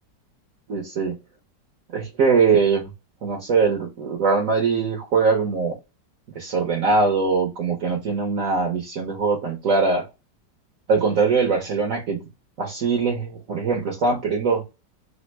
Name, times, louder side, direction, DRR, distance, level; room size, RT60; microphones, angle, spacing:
voice 1, 0.7-1.1 1.9-2.9 3.2-5.8 6.3-10.1 10.9-12.2 12.6-14.6, right 4 dB, 60° right, 1 dB, 0.9 m, -22 dB
3.4 x 2.0 x 3.1 m, 0.26 s
omnidirectional pair, 1.9 m